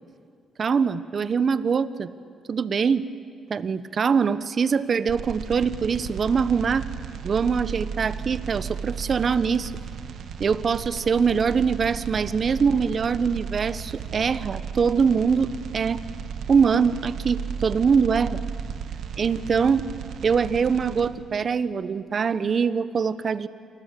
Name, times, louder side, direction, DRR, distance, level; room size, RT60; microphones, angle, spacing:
voice 1, 0.6-2.1 2.5-3.1 3.5-6.9 7.2-9.7 10.4-16.0 16.5-18.4 19.2-19.9 20.2-23.5, right 6 dB, 45° right, 15 dB, 1.0 m, -23 dB
sound 1, 5.1-21.1, right 7 dB, 70° right, 1.9 m, -35 dB
28.5 x 23.5 x 8.4 m, 2.2 s
cardioid pair, 90°, 0 cm